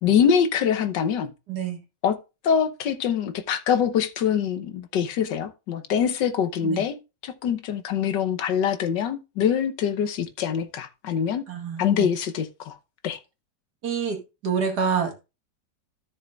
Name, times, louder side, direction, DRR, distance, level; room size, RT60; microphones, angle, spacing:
voice 1, 0.0-1.3 2.0-2.2 2.4-11.5 11.8-12.8 13.0-13.2, left 8 dB, 80° left, 1.6 m, -24 dB
voice 2, 1.5-1.8 6.6-6.8 11.5-12.1 13.8-14.2 14.4-15.2, right 6 dB, 65° right, 2.5 m, -27 dB
13.5 x 6.6 x 2.4 m
omnidirectional pair, 1.9 m